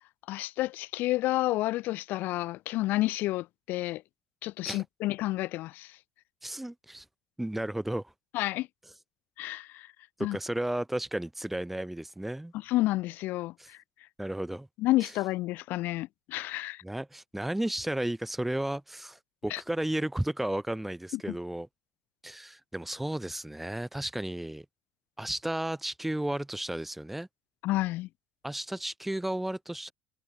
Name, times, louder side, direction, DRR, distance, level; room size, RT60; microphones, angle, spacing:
voice 1, 0.3-4.0 4.4-6.0 8.3-8.7 9.4-9.9 10.2-10.4 12.7-13.8 14.8-16.8 19.5-19.6 21.3-21.4 27.6-28.1, left 17 dB, 70° left, 1.0 m, -30 dB
voice 2, 6.4-7.0 7.4-8.1 10.2-12.5 13.6-13.7 14.2-14.7 15.0-15.1 16.8-21.7 22.2-24.6 25.2-27.3 28.4-29.9, right 1 dB, 5° right, 1.5 m, -33 dB
cardioid pair, 130°, 3 cm